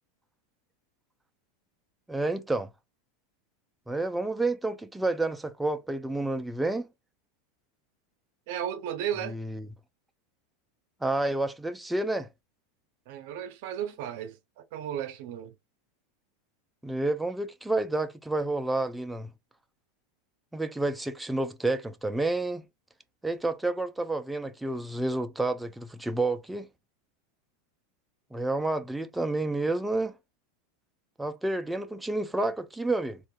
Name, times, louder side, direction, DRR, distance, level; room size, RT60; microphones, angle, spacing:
voice 1, 2.1-2.7 3.9-6.9 9.2-9.7 11.0-12.3 16.8-19.3 20.5-22.6 23.2-26.7 28.3-30.1 31.2-33.2, right 2 dB, 5° right, 0.4 m, -29 dB
voice 2, 8.5-9.4 13.1-15.5, right 10 dB, 65° right, 0.6 m, -34 dB
3.6 x 2.5 x 2.3 m
supercardioid pair, 125°, 0 cm